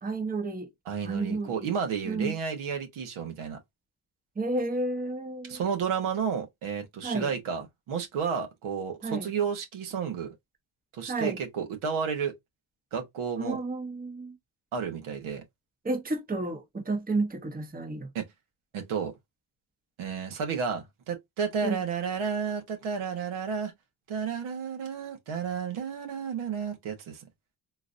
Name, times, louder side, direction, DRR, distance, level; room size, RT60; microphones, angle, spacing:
voice 1, 0.0-0.7 1.0-1.7 2.1-2.3 4.4-5.6 7.0-7.3 9.0-9.3 11.1-11.4 13.4-14.4 15.8-18.1 21.6-21.8, right 2 dB, 20° right, 0.8 m, -31 dB
voice 2, 0.9-3.6 5.4-10.4 10.9-12.3 12.9-13.6 14.7-15.4 18.1-18.3 18.7-19.1 20.0-23.7 24.1-27.2, right 6 dB, 85° right, 1.1 m, -32 dB
3.8 x 2.5 x 2.5 m
cardioid pair, 95°, 48 cm